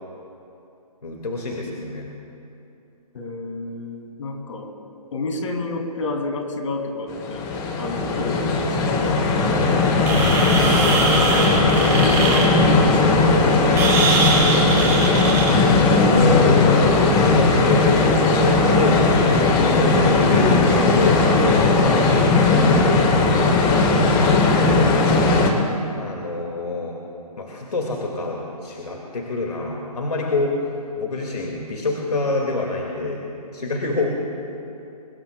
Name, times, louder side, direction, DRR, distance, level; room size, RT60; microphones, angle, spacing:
voice 1, 1.0-2.1 9.5-9.8 16.0-18.1 18.4-19.2 19.6-23.1 23.9-25.2 26.0-27.0 27.4-30.6 30.9-33.2 33.5-34.3, left 3 dB, 75° left, -1 dB, 2.3 m, -27 dB
voice 2, 3.1-4.7 5.1-7.5 7.8-9.1 10.6-11.3 11.8-14.2, left 2 dB, 50° left, 2 dB, 3.2 m, -30 dB
sound 1, 7.1-25.5, left 3 dB, 20° left, 1.4 m, -17 dB
sound 2, 10.0-15.6, right 4 dB, 15° right, 2.9 m, -24 dB
24.0 x 21.0 x 2.4 m, 2.7 s
figure-of-eight pair, 140°, 20 cm